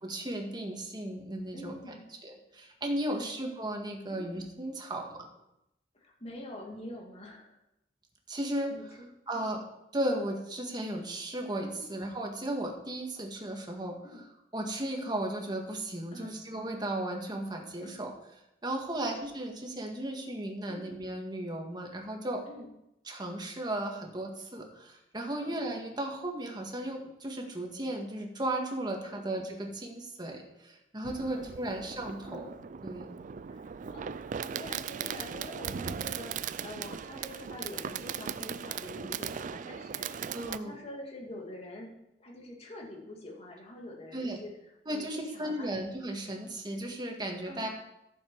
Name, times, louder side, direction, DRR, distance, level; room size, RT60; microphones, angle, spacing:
voice 1, 0.0-1.8 2.2-5.3 8.3-8.7 9.3-9.6 9.9-14.2 14.5-18.1 18.6-22.4 23.1-32.5 32.8-33.1 40.3-40.7 44.1-44.4 44.9-47.7, right 1 dB, 25° right, 2 dB, 1.7 m, -35 dB
voice 2, 1.5-2.1 3.1-3.3 4.1-4.3 5.9-7.6 8.7-9.1 9.3-9.5 11.8-11.9 14.0-14.2 16.1-16.4 17.8-18.1 18.9-19.1 20.7-20.9 22.5-22.7 25.4-25.6 29.0-29.3 31.3-31.8 32.2-32.5 33.5-41.9 42.2-44.5 44.9-45.8 47.4-47.7, left 1 dB, 35° left, -1 dB, 2.3 m, -46 dB
Fireworks, 31.0-40.6, right 7 dB, 45° right, 0.4 m, -38 dB
13.5 x 7.3 x 4.6 m, 0.86 s
head